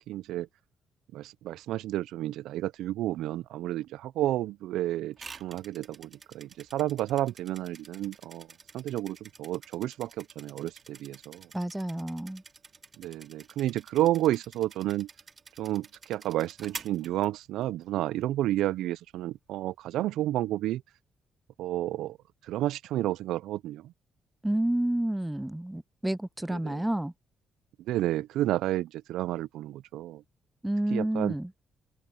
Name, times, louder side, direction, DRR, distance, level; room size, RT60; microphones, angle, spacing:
voice 1, 0.1-0.5 1.1-8.5 8.7-11.5 13.0-15.1 15.6-20.8 21.6-22.2 22.5-23.9 26.5-26.8 27.9-30.2 30.9-31.3, right 14 dB, 85° right, 0.3 m, -31 dB
sound 1, 5.2-17.8, right 5 dB, 40° right, 2.2 m, -49 dB
voice 2, 11.5-12.4 24.4-27.1 30.6-31.5, right 1 dB, 10° right, 0.4 m, -29 dB
open air
cardioid pair, 90°, 0 cm